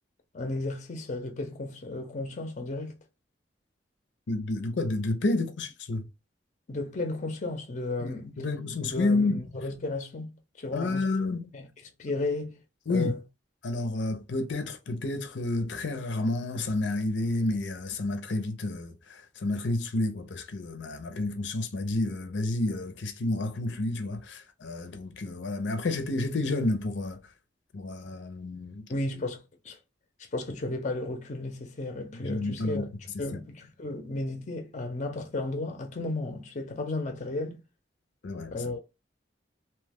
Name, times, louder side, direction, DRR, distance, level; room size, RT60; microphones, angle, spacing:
voice 1, 0.3-3.0 6.7-8.3 8.9-11.1 11.5-11.7 12.0-12.6 12.9-13.2 28.9-29.8 30.3-32.9 33.2-37.6 38.5-38.8, left 2 dB, 40° left, 0.6 m, -34 dB
voice 2, 4.3-6.1 8.0-9.4 10.7-11.5 12.9-13.1 13.6-27.3 27.7-28.9 32.1-32.9 38.2-38.7, left 2 dB, 85° left, 0.6 m, -30 dB
2.8 x 2.2 x 3.4 m
head